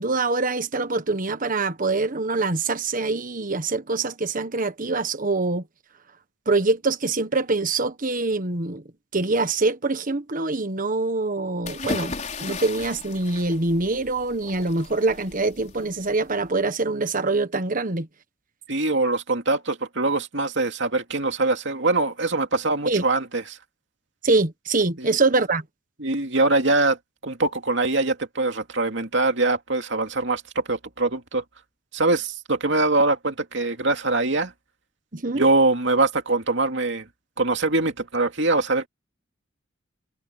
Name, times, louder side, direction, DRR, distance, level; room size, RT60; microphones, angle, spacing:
voice 1, 0.0-5.6 6.5-8.8 9.1-12.1 12.4-18.1 22.8-23.0 24.2-25.6 35.1-35.5, right 3 dB, 45° right, 1.4 m, -24 dB
sound 1, 11.6-16.5, left 3 dB, 40° left, 4.9 m, -36 dB
voice 2, 18.7-23.6 25.0-25.2 26.0-27.0 27.2-31.4 31.9-34.5 35.3-37.1 37.4-38.9, right 2 dB, 65° right, 2.6 m, -23 dB
head